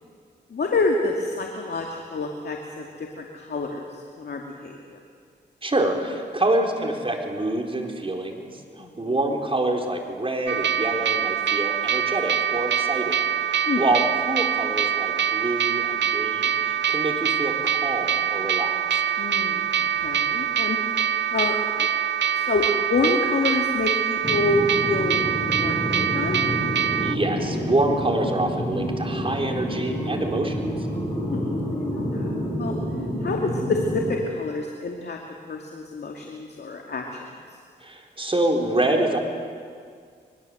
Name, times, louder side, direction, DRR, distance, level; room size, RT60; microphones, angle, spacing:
voice 1, 0.5-5.0 8.8-9.1 13.7-13.9 19.2-20.8 21.3-21.9 22.4-25.2 25.6-26.4 31.1-32.3 32.6-32.7 33.2-35.2 35.5-37.3, left 3 dB, 65° left, 1 dB, 2.4 m, -28 dB
voice 2, 5.6-13.2 13.5-19.0 27.0-30.6 37.8-39.2, right 2 dB, 30° right, 1 dB, 4.4 m, -26 dB
sound 1, 10.5-27.2, right 8 dB, 75° right, 0.6 m, -24 dB
sound 2, 24.2-34.1, equal, 15° left, 5.6 m, -28 dB
24.5 x 22.5 x 8.0 m, 2.1 s
cardioid pair, 70°, 18 cm